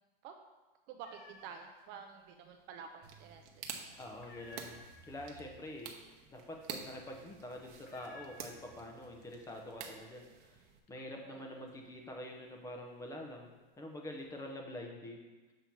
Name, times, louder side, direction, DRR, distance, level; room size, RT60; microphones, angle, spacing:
voice 1, 0.9-4.0 11.2-11.7, right 6 dB, 40° right, 5 dB, 0.5 m, -50 dB
sound 1, 1.0-1.9 2.2-3.0 3.3-3.7 4.0-9.1 9.4-10.0 10.3-13.5 14.0-14.6, left 3 dB, 80° left, 1.3 m, -58 dB
sound 2, 3.0-10.8, right 6 dB, 55° right, 0.9 m, -50 dB
voice 2, 4.0-6.0 6.3-10.6 10.9-15.3, left 1 dB, 10° left, 1 dB, 0.7 m, -46 dB
6.8 x 3.0 x 5.8 m, 1.2 s
supercardioid pair, 135°, 29 cm